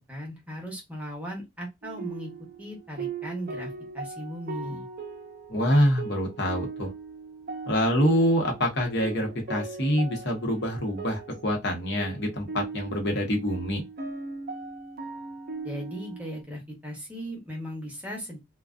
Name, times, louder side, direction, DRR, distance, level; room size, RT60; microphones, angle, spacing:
voice 1, 0.1-2.3 2.6-4.9 15.6-18.4, equal, 5° right, 0.8 m, -37 dB
sound 1, 1.8-16.4, right 4 dB, 50° right, 0.5 m, -39 dB
voice 2, 5.5-6.9 7.7-13.8, equal, 60° left, 0.9 m, -25 dB
2.4 x 2.2 x 2.4 m
head